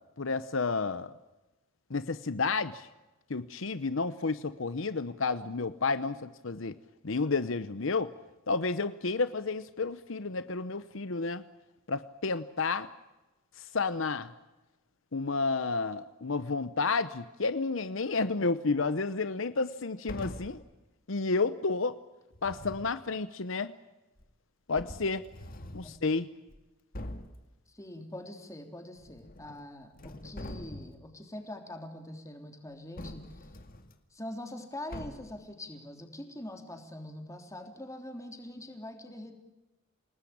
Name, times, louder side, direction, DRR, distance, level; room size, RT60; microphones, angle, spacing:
voice 1, 0.2-1.1 1.9-2.9 3.3-6.8 7.0-8.1 8.5-11.4 11.9-12.9 13.6-14.3 15.1-20.6 21.1-22.0 22.4-23.7 24.7-25.2 25.7-26.3, left 4 dB, 65° left, 13 dB, 0.9 m, -31 dB
sound 1, 20.1-20.7 22.3-23.0 24.2-24.3 24.8-26.0 26.5-26.6 26.9-27.4 29.0-29.6 29.9-31.1 33.0-33.9 34.9-35.4, left 1 dB, 45° left, 2.1 m, -43 dB
voice 2, 27.7-33.5 34.1-39.3, left 1 dB, 15° left, 5 dB, 3.4 m, -43 dB
28.5 x 19.5 x 8.7 m, 1.1 s
head